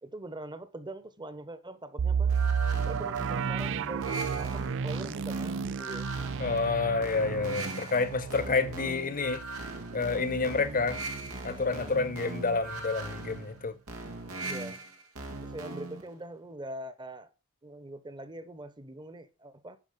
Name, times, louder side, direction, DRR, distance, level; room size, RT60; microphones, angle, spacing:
voice 1, 0.0-2.4 2.8-6.1 6.8-6.9 11.6-12.0 14.2-14.8 15.4-17.3 17.6-19.8, right 1 dB, 20° right, 1.1 m, -43 dB
sound 1, 2.0-11.7 12.1-12.2 12.7-12.9, right 6 dB, 60° right, 0.4 m, -33 dB
sound 2, 2.3-16.1, right 2 dB, 90° right, 1.9 m, -40 dB
voice 2, 6.4-9.4 9.9-11.0 11.4-13.7, left 4 dB, 40° left, 1.0 m, -29 dB
9.9 x 5.9 x 5.3 m
head